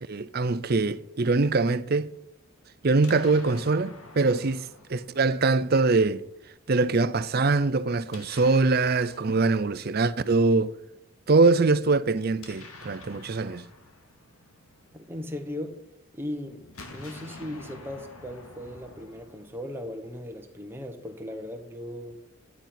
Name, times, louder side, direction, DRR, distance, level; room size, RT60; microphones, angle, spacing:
voice 1, 0.1-2.1 2.8-6.2 6.7-10.7 11.3-13.6, right 3 dB, 45° right, 0.5 m, -23 dB
Explosion, 2.8-5.9 8.0-10.2 12.1-15.5 16.6-20.0, left 2 dB, 85° left, 2.2 m, -48 dB
voice 2, 14.9-15.8 16.1-22.2, left 1 dB, 10° right, 1.3 m, -37 dB
12.0 x 8.6 x 5.9 m
head